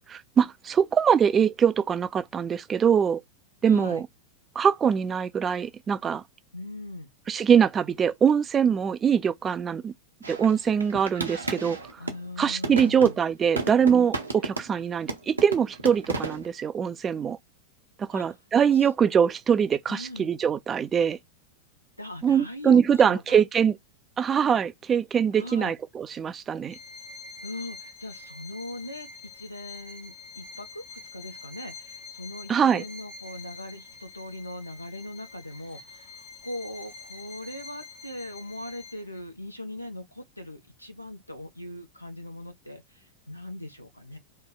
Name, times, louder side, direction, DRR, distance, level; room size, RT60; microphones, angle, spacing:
voice 1, 0.1-3.2 3.6-4.1 4.6-6.2 7.3-9.9 10.3-11.8 12.4-17.4 18.0-21.2 22.2-23.8 24.2-26.8 32.5-32.8, right 7 dB, 20° right, 0.3 m, -23 dB
voice 2, 3.7-4.0 6.5-7.1 11.6-13.2 18.1-18.3 18.7-18.9 19.9-20.3 22.0-23.4 25.3-25.7 27.4-29.1 29.3-44.2, left 1 dB, 90° left, 0.7 m, -40 dB
sound 1, 10.2-12.3 12.6-14.8 15.1-16.5, right 3 dB, 80° right, 0.8 m, -33 dB
Bowed string instrument, 26.7-39.2, left 4 dB, 50° left, 1.2 m, -46 dB
3.1 x 2.2 x 3.8 m
figure-of-eight pair, 90°, 0 cm